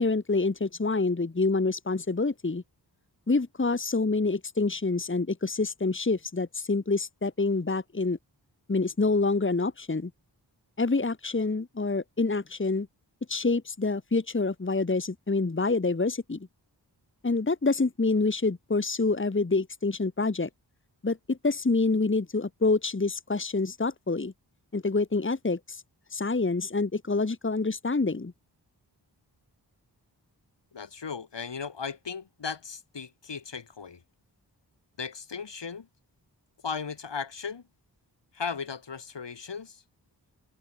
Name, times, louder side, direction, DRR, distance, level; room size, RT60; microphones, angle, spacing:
voice 1, 0.0-2.6 3.3-8.2 8.7-10.1 10.8-12.9 13.3-16.5 17.2-20.5 21.0-24.3 24.7-25.8 26.1-28.3, left 3 dB, 30° left, 1.9 m, -27 dB
voice 2, 30.7-34.0 35.0-35.9 36.6-37.6 38.3-39.8, left 6 dB, 85° left, 6.3 m, -36 dB
wide cardioid pair, 95°, 41 cm